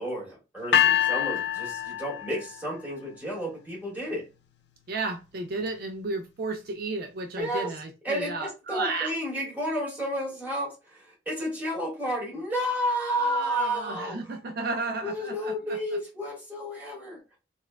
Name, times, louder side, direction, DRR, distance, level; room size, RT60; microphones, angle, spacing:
voice 1, 0.0-4.3 7.4-7.7 8.0-14.2 15.0-17.2, equal, 10° right, 1.7 m, -31 dB
sound 1, 0.7-2.8, left 10 dB, 75° left, 0.4 m, -25 dB
voice 2, 4.9-9.1 13.2-15.8, right 3 dB, 60° right, 0.4 m, -33 dB
4.1 x 2.3 x 2.2 m
head